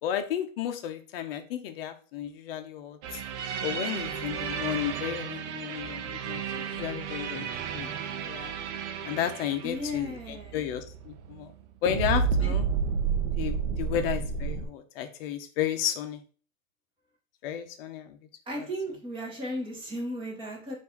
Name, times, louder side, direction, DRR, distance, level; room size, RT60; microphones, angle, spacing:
voice 1, 0.0-3.2 3.6-7.5 7.7-7.9 8.2-8.5 9.0-11.5 11.8-12.7 13.4-16.2 17.4-18.2 18.6-18.7, left 10 dB, 45° left, 7 dB, 0.8 m, -33 dB
sound 1, 3.0-11.6 11.9-14.7, right 6 dB, 60° right, 0.7 m, -32 dB
voice 2, 9.6-10.6 12.4-12.5 18.5-20.7, equal, 15° right, -2 dB, 1.4 m, -35 dB
4.6 x 2.8 x 4.0 m, 0.40 s
hypercardioid pair, 140°, 40 cm